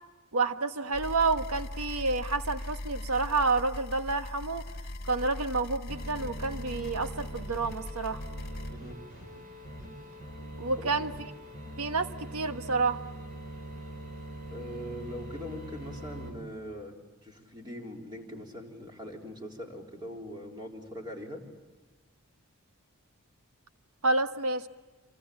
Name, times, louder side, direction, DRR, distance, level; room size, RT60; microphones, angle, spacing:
voice 1, 0.3-4.7 5.1-8.2 10.6-11.1 11.8-13.0 24.0-24.7, right 3 dB, 80° right, 8 dB, 1.4 m, -29 dB
sound 1, 0.9-8.7, left 1 dB, 45° left, 1.5 m, -40 dB
sound 2, 5.9-16.3, right 1 dB, 40° right, 6.4 m, -43 dB
voice 2, 8.7-9.0 10.8-10.9 14.5-17.0 17.2-21.5, equal, 20° right, 1 dB, 3.9 m, -41 dB
27.5 x 25.0 x 8.6 m, 1.2 s
head